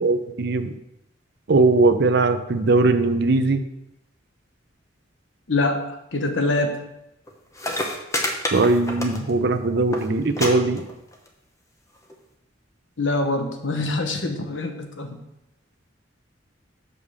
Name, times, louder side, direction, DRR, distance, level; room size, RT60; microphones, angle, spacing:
voice 1, 0.0-0.7 1.5-3.6 8.5-10.8, right 3 dB, 60° right, 9 dB, 0.6 m, -20 dB
voice 2, 5.5-6.8 13.0-15.2, left 2 dB, 85° left, 5 dB, 1.1 m, -24 dB
sound 1, 7.3-7.4 7.5-9.5 9.7-10.0 10.4-10.5 10.8-11.3 12.1-12.2, left 1 dB, 15° left, 1.0 m, -27 dB
6.6 x 5.5 x 6.3 m, 0.86 s
head